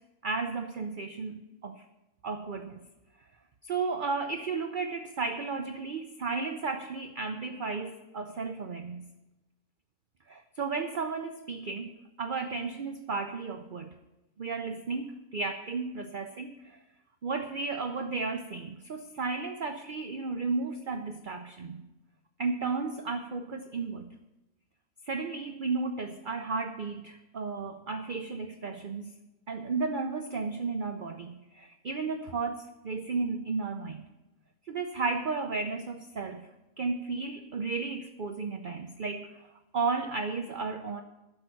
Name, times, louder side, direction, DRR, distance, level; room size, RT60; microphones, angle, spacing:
voice 1, 0.2-1.8 2.2-2.8 3.6-9.0 10.3-13.9 14.4-16.8 17.2-21.8 22.4-24.1 25.0-29.1 29.5-34.1 34.7-36.5 36.8-39.5 39.7-41.0, right 4 dB, 50° right, 7 dB, 0.6 m, -34 dB
10.5 x 6.5 x 9.0 m, 1.0 s
omnidirectional pair, 1.6 m